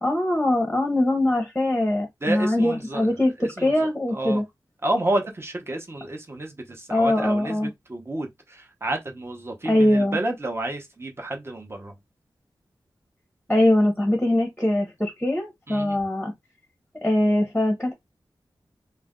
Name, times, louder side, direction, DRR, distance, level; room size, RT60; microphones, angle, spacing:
voice 1, 0.0-4.4 6.9-7.7 9.6-10.2 13.5-16.3 17.0-17.9, left 1 dB, 10° left, 0.8 m, -22 dB
voice 2, 2.2-3.1 3.4-4.4 4.8-7.6 7.9-11.9 15.7-16.0, right 1 dB, 30° right, 0.9 m, -30 dB
2.5 x 2.1 x 3.6 m
wide cardioid pair, 90°, 8 cm